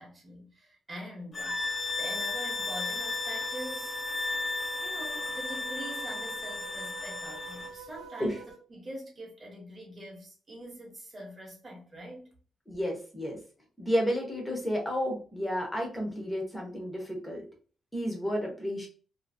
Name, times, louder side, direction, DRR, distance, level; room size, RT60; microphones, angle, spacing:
voice 1, 0.0-4.0 4.4-4.5 4.8-8.4 8.7-12.4, right 1 dB, 25° right, 0.9 m, -44 dB
sound 1, 1.3-7.7, left 3 dB, 25° left, 0.3 m, -34 dB
sound 2, 1.4-8.6, right 7 dB, 80° right, 0.7 m, -45 dB
voice 2, 12.7-13.4 13.8-17.4 17.9-18.9, equal, 5° left, 0.8 m, -31 dB
2.6 x 2.5 x 2.5 m
cardioid pair, 170°, 0 cm